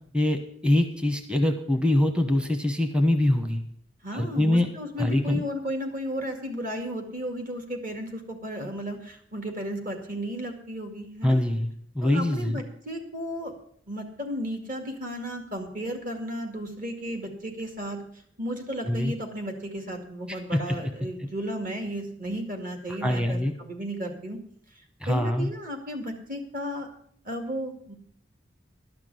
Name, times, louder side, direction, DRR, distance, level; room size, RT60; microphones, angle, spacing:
voice 1, 0.1-3.6 4.1-4.7 5.0-5.4 11.2-12.6 18.9-19.1 20.3-20.9 23.0-23.5 25.0-25.5, left 1 dB, 5° right, 6 dB, 1.0 m, -24 dB
voice 2, 4.0-11.4 12.0-13.5 13.9-18.0 18.4-24.4 25.1-26.9 27.2-27.9, equal, 45° right, 4 dB, 2.2 m, -34 dB
12.0 x 6.0 x 9.4 m, 0.64 s
head